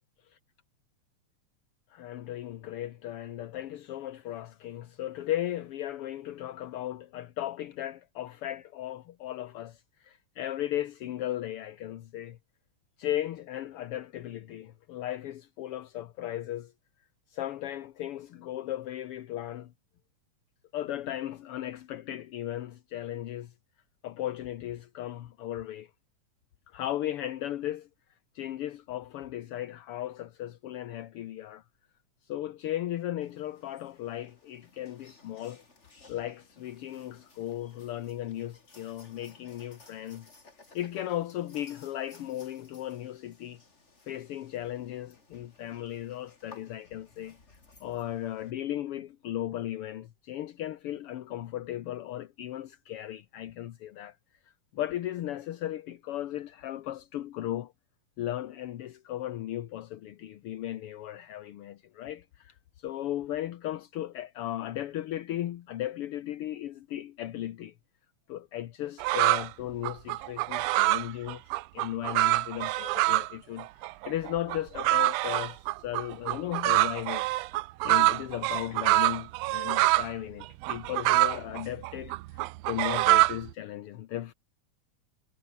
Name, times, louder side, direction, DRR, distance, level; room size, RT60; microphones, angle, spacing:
voice 1, 1.9-12.4 13.0-16.7 17.3-19.7 20.7-23.5 24.0-25.9 26.7-27.9 28.3-31.6 32.2-35.6 36.1-40.3 40.7-43.6 44.0-47.4 47.8-54.2 54.7-57.7 58.2-67.7 68.3-77.3 77.8-82.4 82.6-84.3, left 13 dB, 65° left, 1.6 m, -36 dB
sound 1, 33.2-48.5, left 3 dB, 25° left, 3.3 m, -58 dB
sound 2, 69.0-69.5 69.8-73.3 73.6-80.1 80.4-83.5, right 19 dB, 80° right, 1.5 m, -25 dB
omnidirectional pair, 3.3 m